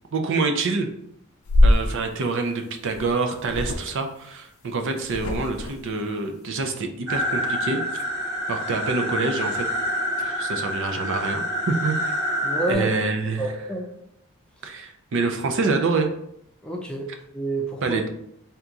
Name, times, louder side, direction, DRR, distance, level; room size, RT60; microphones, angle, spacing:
voice 1, 0.1-0.9 1.6-7.8 8.5-9.7 10.2-12.1 12.7-13.4 14.6-16.1 17.8-18.1, right 3 dB, 55° right, 5 dB, 0.5 m, -26 dB
sound 1, 1.5-1.9 2.9-3.1 3.4-3.9 5.0-5.7, left 1 dB, 65° left, 0.4 m, -21 dB
sound 2, 7.1-12.7, equal, 75° right, 1.1 m, -27 dB
voice 2, 12.4-12.9 13.4-13.9 16.6-18.0, right 2 dB, 5° left, -1 dB, 0.5 m, -29 dB
3.5 x 2.9 x 3.7 m, 0.74 s
head